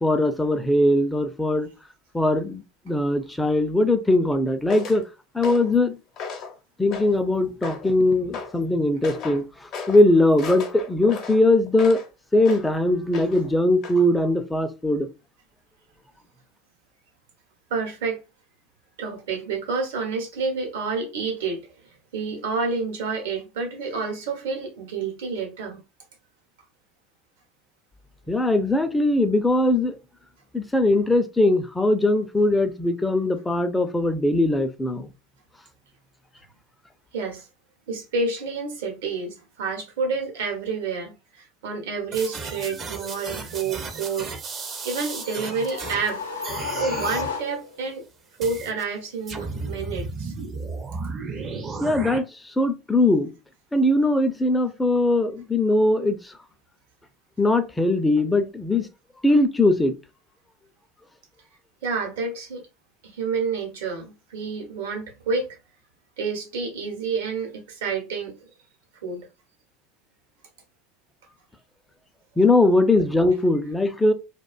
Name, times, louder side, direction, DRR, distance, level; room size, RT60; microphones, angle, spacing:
voice 1, 0.0-1.7 2.1-5.0 5.3-6.0 6.8-12.0 12.3-15.1 28.3-30.0 30.5-35.1 51.8-52.2 52.6-53.3 53.7-56.3 57.4-58.9 59.2-59.9 72.4-74.1, left 2 dB, 10° left, 0.5 m, -20 dB
sound 1, 4.7-5.0 5.4-5.8 6.2-6.5 6.9-7.3 7.6-8.0 8.3-8.6 9.0-9.4 9.7-10.0 10.4-12.1 12.4-12.7 13.1-13.5 13.8-14.0, left 5 dB, 50° left, 0.7 m, -36 dB
voice 2, 17.7-18.2 19.0-21.6 22.1-25.8 37.1-37.5 37.9-44.3 44.8-46.2 46.8-48.0 48.4-50.3 61.8-62.6 63.1-65.5 66.2-68.3 69.0-69.3, right 4 dB, 70° right, 0.9 m, -29 dB
sound 2, 42.1-46.1 46.4-47.3 48.4-48.8 49.3-52.2, right 4 dB, 35° right, 0.6 m, -34 dB
sound 3, 44.7-47.9, left 5 dB, 90° left, 0.6 m, -33 dB
2.4 x 2.2 x 2.3 m
hypercardioid pair, 75°, 0 cm